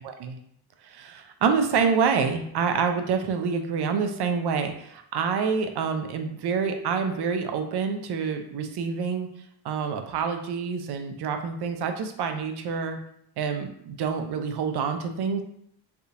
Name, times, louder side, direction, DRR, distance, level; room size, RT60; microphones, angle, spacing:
voice 1, 0.8-9.3 9.6-13.0 13.4-15.4, right 6 dB, 70° right, 6 dB, 0.5 m, -27 dB
3.4 x 2.4 x 2.8 m, 0.70 s
cardioid pair, 105°, 41 cm